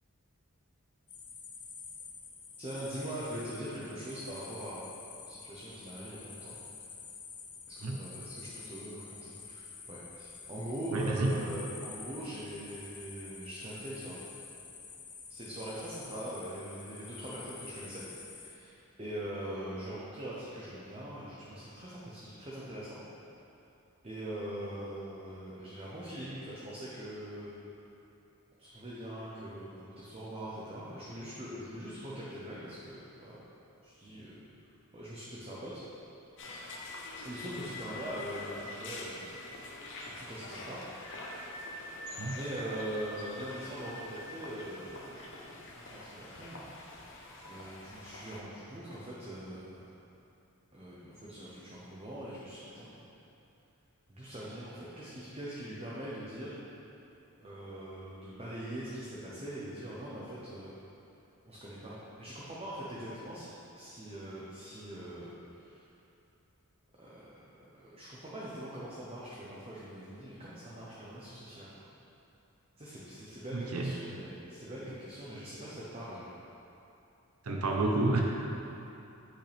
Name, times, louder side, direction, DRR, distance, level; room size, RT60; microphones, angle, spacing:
sound 1, 1.1-18.6, left 5 dB, 20° left, 0.4 m, -49 dB
voice 1, 2.6-4.9 5.2-6.6 7.8-14.2 15.3-18.0 18.3-23.0 24.0-27.5 28.6-33.4 33.8-34.3 34.9-35.8 37.2-40.8 42.3-46.7 47.4-49.9 50.7-53.0 54.1-56.6 57.4-60.7 61.5-63.5 63.7-65.8 67.0-67.3 67.6-71.7 72.8-76.3, right 1 dB, 25° right, -7 dB, 0.8 m, -42 dB
voice 2, 10.9-11.3 42.2-42.4 73.5-74.0 77.4-78.2, right 2 dB, 85° right, 0 dB, 0.7 m, -29 dB
sound 2, 36.4-48.4, left 2 dB, 55° left, 0.9 m, -45 dB
8.8 x 5.5 x 3.5 m, 2.8 s
head